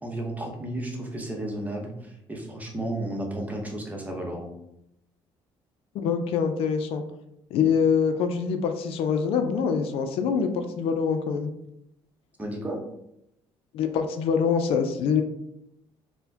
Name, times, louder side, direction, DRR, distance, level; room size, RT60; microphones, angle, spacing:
voice 1, 0.0-4.5 12.4-12.8, right 1 dB, 15° right, 1 dB, 0.8 m, -33 dB
voice 2, 5.9-7.0 7.5-11.5 13.7-15.2, left 6 dB, 70° left, 7 dB, 0.4 m, -24 dB
4.2 x 2.1 x 2.7 m, 0.80 s
cardioid pair, 105°, 10 cm